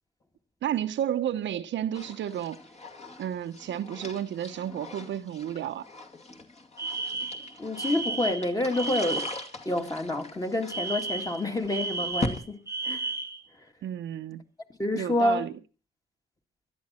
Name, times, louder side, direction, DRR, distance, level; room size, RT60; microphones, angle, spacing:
voice 1, 0.6-2.6 3.2-5.9 13.8-14.4 14.9-15.5, right 10 dB, 70° right, 0.9 m, -31 dB
sound 1, 1.9-12.4, left 2 dB, 35° left, 2.4 m, -41 dB
Alarm, 6.8-9.5 10.7-13.4, right 3 dB, 15° right, 1.1 m, -33 dB
voice 2, 7.6-9.3 9.7-13.1 14.8-15.4, left 1 dB, 20° left, 2.1 m, -28 dB
17.0 x 12.0 x 4.3 m
cardioid pair, 90°, 20 cm